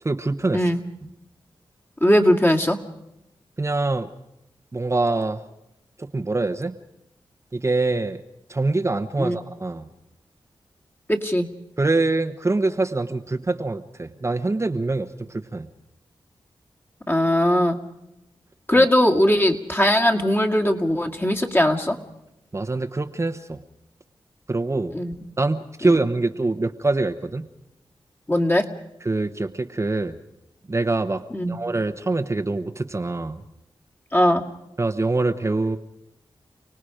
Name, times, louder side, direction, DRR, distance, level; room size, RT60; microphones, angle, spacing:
voice 1, 0.0-0.7 3.6-4.1 4.7-5.4 6.0-6.7 7.5-8.2 8.5-9.9 11.8-15.7 18.7-18.9 22.5-23.6 24.5-25.0 25.4-27.5 29.0-30.2 30.7-33.4 34.8-35.8, right 2 dB, 30° right, 6 dB, 1.0 m, -24 dB
voice 2, 2.0-2.8 9.2-9.4 11.1-11.5 17.1-17.8 18.7-22.0 24.9-25.1 25.8-26.0 28.3-28.7 31.3-31.5 34.1-34.4, left 1 dB, 25° left, 2 dB, 2.2 m, -19 dB
30.0 x 18.5 x 5.0 m, 0.87 s
cardioid pair, 60°, 9 cm